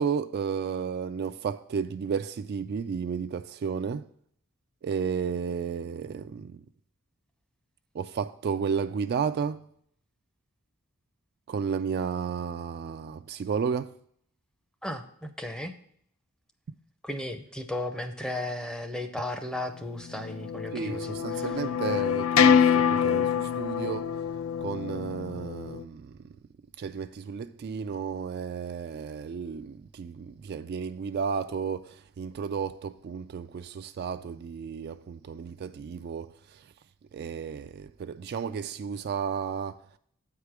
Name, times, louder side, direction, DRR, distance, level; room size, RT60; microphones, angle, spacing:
voice 1, 0.0-4.1 4.8-6.6 7.9-9.7 11.5-13.9 20.7-24.2 24.6-26.4 26.8-36.7 37.1-39.8, right 6 dB, 50° right, 0.3 m, -33 dB
voice 2, 14.8-15.7 17.0-21.5, left 1 dB, 5° left, 0.6 m, -35 dB
sound 1, 20.1-25.8, left 7 dB, 65° left, 0.4 m, -25 dB
8.2 x 4.9 x 5.9 m
head